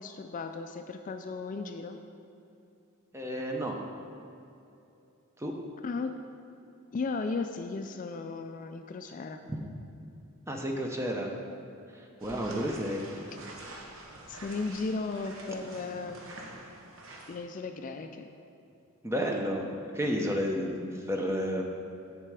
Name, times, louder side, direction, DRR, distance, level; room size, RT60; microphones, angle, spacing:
voice 1, 0.0-2.0 5.8-6.1 6.9-9.4 14.3-16.2 17.3-18.3, left 4 dB, 40° left, 7 dB, 0.3 m, -35 dB
voice 2, 3.1-3.8 5.4-5.5 9.5-9.6 10.5-11.4 11.9-13.1 19.0-19.7 19.9-21.6, equal, 15° right, 1 dB, 0.7 m, -31 dB
sound 1, 12.2-17.4, right 2 dB, 70° right, 1.0 m, -46 dB
7.5 x 6.7 x 4.8 m, 2.7 s
head